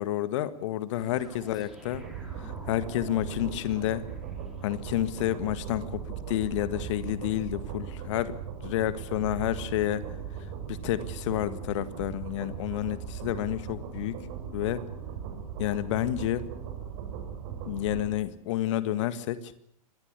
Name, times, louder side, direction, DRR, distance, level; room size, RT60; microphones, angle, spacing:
voice 1, 0.0-2.0 2.4-4.1 4.6-8.4 8.6-10.0 10.7-14.2 14.5-14.8 15.6-16.5 17.6-19.5, left 13 dB, 50° left, 14 dB, 1.8 m, -30 dB
sound 1, 1.0-4.9, right 1 dB, ahead, 5.8 m, -49 dB
sound 2, 1.9-18.1, right 7 dB, 45° right, 7.4 m, -38 dB
25.0 x 19.0 x 8.2 m, 0.62 s
figure-of-eight pair, 105°, 20 cm